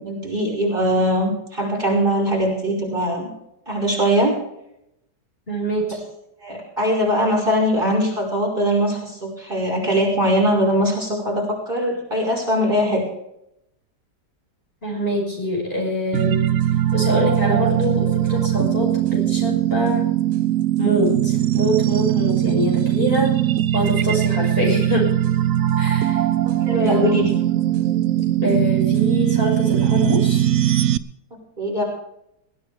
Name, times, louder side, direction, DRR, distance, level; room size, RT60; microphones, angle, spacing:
voice 1, 0.0-3.3 3.7-4.3 6.4-13.0 26.7-27.3 31.6-31.8, equal, 30° right, -2 dB, 5.7 m, -21 dB
voice 2, 5.5-6.0 14.8-16.5 16.9-20.1 20.8-23.4 23.7-25.1 25.8-26.2 26.7-27.3 28.4-30.5, equal, 30° left, -2 dB, 6.4 m, -24 dB
sound 1, 16.1-31.0, right 12 dB, 60° right, 0.9 m, -20 dB
21.0 x 16.0 x 3.5 m, 0.79 s
omnidirectional pair, 1.9 m